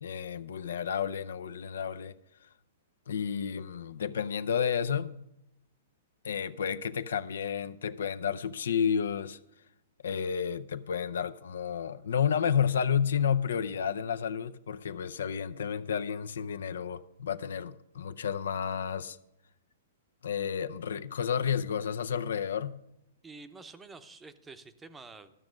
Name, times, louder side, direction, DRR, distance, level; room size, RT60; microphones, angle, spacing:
voice 1, 0.0-2.1 3.1-5.2 6.2-9.4 10.0-19.2 20.2-22.8, left 7 dB, 80° left, 0.5 m, -31 dB
voice 2, 23.2-25.3, right 3 dB, 10° right, 0.7 m, -48 dB
12.5 x 6.0 x 6.4 m
hypercardioid pair, 135°, 0 cm